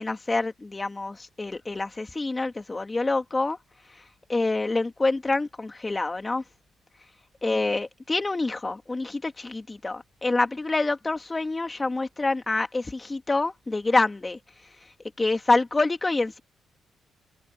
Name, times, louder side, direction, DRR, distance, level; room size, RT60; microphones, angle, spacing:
voice 1, 0.0-3.6 4.3-6.4 7.4-14.4 15.2-16.4, left 3 dB, 20° left, 2.8 m, -26 dB
cardioid pair, 90°, 0 cm